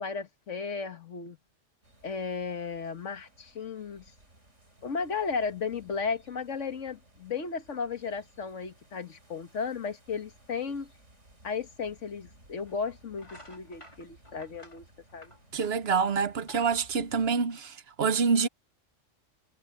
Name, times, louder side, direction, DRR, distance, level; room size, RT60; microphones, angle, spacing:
voice 1, 0.0-1.4 2.0-4.1 4.8-10.9 11.4-14.8 15.1-15.3, left 5 dB, 90° left, 1.8 m, -34 dB
sound 1, 1.8-17.3, right 1 dB, 80° right, 6.7 m, -59 dB
sound 2, 12.6-12.8 13.1-15.9 16.2-17.9, left 1 dB, 25° left, 4.4 m, -53 dB
voice 2, 15.5-18.5, right 5 dB, 60° right, 1.1 m, -26 dB
omnidirectional pair, 1.2 m